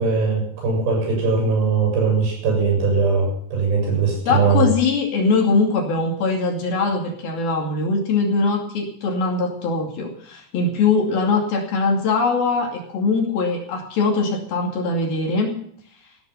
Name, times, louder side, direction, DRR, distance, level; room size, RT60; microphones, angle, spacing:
voice 1, 0.0-4.7, right 4 dB, 65° right, 2 dB, 9.5 m, -20 dB
voice 2, 4.3-15.5, left 4 dB, 55° left, 1 dB, 4.2 m, -21 dB
17.0 x 12.5 x 5.8 m, 0.64 s
omnidirectional pair, 5.2 m